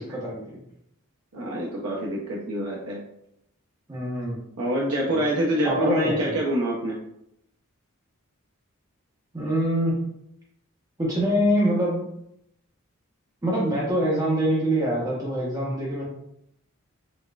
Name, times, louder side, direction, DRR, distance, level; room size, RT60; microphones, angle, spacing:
voice 1, 0.1-0.6 3.9-4.4 5.1-5.2 5.6-6.4 9.3-10.0 11.0-12.0 13.4-16.0, equal, 15° right, -5 dB, 0.7 m, -24 dB
voice 2, 1.3-3.0 4.6-7.0, equal, 85° right, -4 dB, 0.6 m, -26 dB
4.0 x 2.2 x 2.3 m, 0.77 s
head